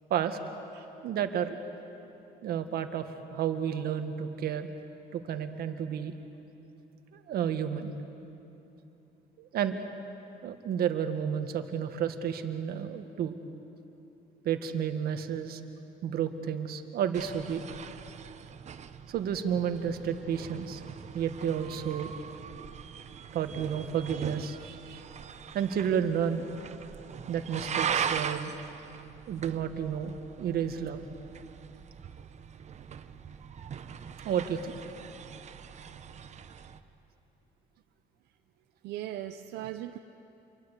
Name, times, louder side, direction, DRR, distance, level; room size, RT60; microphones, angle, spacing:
voice 1, 1.0-1.6 2.4-4.7 5.1-6.1 7.1-7.9 9.4-9.8 10.4-13.3 14.5-15.6 16.0-17.6 19.1-20.8 21.1-22.1 23.3-25.0 25.5-26.5 27.3-28.5 29.3-31.0 34.3-34.8, right 8 dB, 65° right, 7 dB, 1.8 m, -31 dB
sound 1, 17.1-36.8, right 7 dB, 40° right, 1.0 m, -40 dB
voice 2, 38.8-40.0, right 13 dB, 90° right, 6 dB, 0.8 m, -38 dB
28.0 x 23.5 x 8.3 m, 2.9 s
cardioid pair, 110°, 17 cm